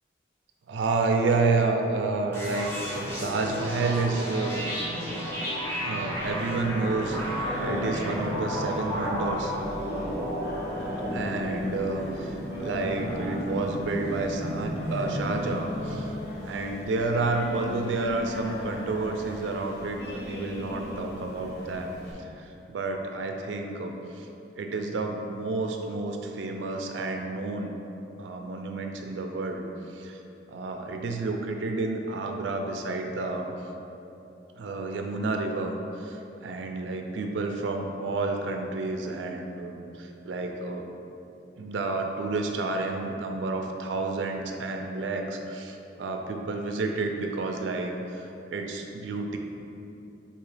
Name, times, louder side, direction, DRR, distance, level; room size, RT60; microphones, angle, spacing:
voice 1, 0.7-4.7 5.8-9.5 11.1-16.1 16.4-24.3 24.6-27.7 28.2-30.2 30.5-33.5 34.6-40.9 41.6-49.4, right 3 dB, 90° right, 3 dB, 0.4 m, -30 dB
sound 1, 2.3-15.9, equal, 15° left, 0.8 m, -33 dB
Singing, 6.1-22.1, left 1 dB, 60° left, 0.7 m, -37 dB
3.8 x 2.8 x 4.8 m, 2.8 s
head